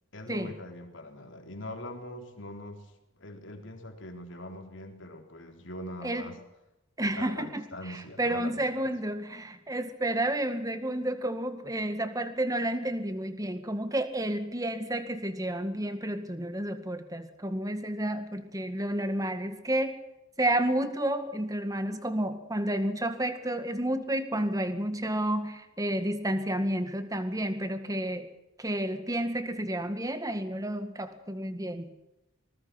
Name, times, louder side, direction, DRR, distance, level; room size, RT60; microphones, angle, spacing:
voice 1, 0.1-2.9 3.2-6.4 7.2-8.9, left 1 dB, 60° left, 5 dB, 3.8 m, -42 dB
voice 2, 7.0-20.0 20.4-28.3 28.6-31.9, right 1 dB, 15° right, 9 dB, 2.0 m, -31 dB
24.5 x 20.5 x 6.0 m, 0.92 s
head